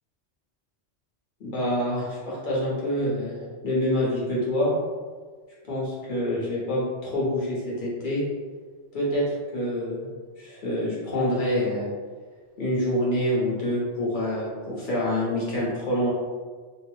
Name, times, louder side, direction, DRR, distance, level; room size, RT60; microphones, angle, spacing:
voice 1, 1.4-3.4 3.6-4.7 5.7-8.2 8.9-9.2 9.5-10.1 10.4-11.9 12.6-16.1, left 1 dB, 45° left, -7 dB, 1.0 m, -26 dB
2.6 x 2.1 x 3.1 m, 1.5 s
omnidirectional pair, 1.2 m